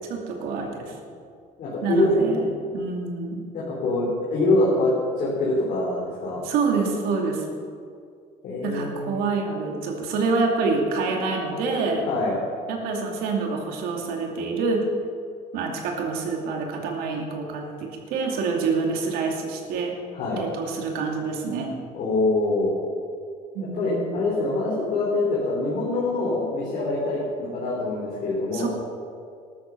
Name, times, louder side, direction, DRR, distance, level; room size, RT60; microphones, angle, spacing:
voice 1, 0.1-0.9 1.8-2.4 2.7-3.5 6.4-7.4 8.6-12.1 12.7-14.8 15.5-19.9 20.3-21.8 23.5-24.3 28.5-28.7, right 4 dB, 75° right, 1 dB, 2.6 m, -27 dB
voice 2, 1.6-2.2 3.5-6.5 8.4-9.2 12.1-12.3 20.1-20.4 21.9-22.7 23.6-28.7, left 2 dB, 55° left, -5 dB, 3.8 m, -24 dB
14.0 x 12.5 x 6.0 m, 2.3 s
cardioid pair, 140°, 16 cm